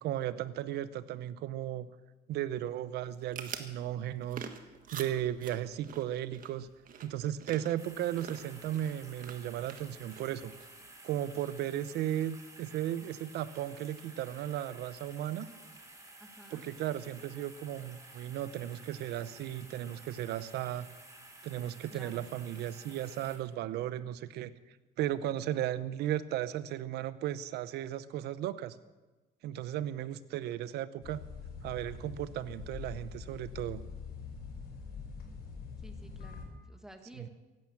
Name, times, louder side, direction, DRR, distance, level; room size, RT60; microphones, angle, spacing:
voice 1, 0.0-1.9 2.3-4.5 4.9-6.7 7.0-10.5 11.0-15.5 16.5-20.9 21.4-24.5 25.0-28.8 29.4-31.2 31.6-33.8 37.2-37.3, right 12 dB, 75° right, 15 dB, 0.8 m, -35 dB
sound 1, 3.0-10.9, right 7 dB, 55° right, 1.6 m, -48 dB
sound 2, 7.8-23.4, right 2 dB, 20° right, 3.6 m, -53 dB
voice 2, 16.2-16.7 21.9-22.3 35.8-37.3, right 1 dB, 5° right, 5 dB, 1.8 m, -53 dB
sound 3, 31.0-36.4, left 5 dB, 65° left, 5.1 m, -44 dB
15.5 x 12.0 x 7.3 m, 1.2 s
cardioid pair, 110°, 17 cm